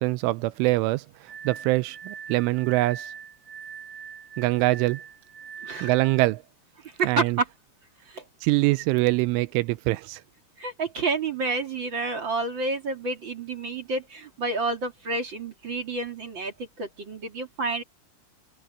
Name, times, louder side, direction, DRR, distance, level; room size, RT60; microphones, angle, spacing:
voice 1, 0.0-3.1 4.4-5.0 5.8-6.4 7.0-7.4 8.4-10.2, right 20 dB, 85° right, 2.9 m, -24 dB
Glass, 1.3-6.3, right 7 dB, 5° left, 1.9 m, -42 dB
voice 2, 6.8-7.5 8.0-8.2 10.6-17.8, right 3 dB, 40° right, 1.7 m, -29 dB
omnidirectional pair, 5.9 m